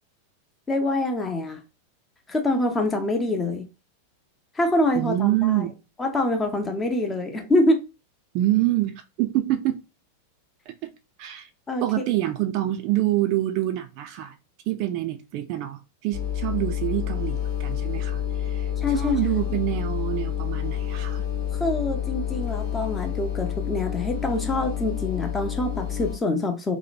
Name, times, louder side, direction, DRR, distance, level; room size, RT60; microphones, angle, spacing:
voice 1, 0.7-1.6 2.3-3.7 4.5-5.7 6.0-7.8 11.7-11.8 18.8-19.2 21.6-26.8, left 2 dB, 15° left, 0.6 m, -25 dB
voice 2, 4.9-5.7 8.3-9.8 10.7-10.9 11.2-11.5 11.8-14.3 14.7-21.2, right 14 dB, 45° right, 0.3 m, -26 dB
sound 1, 16.1-26.2, left 10 dB, 55° left, 1.0 m, -29 dB
2.8 x 2.1 x 2.5 m
figure-of-eight pair, 90°, 0 cm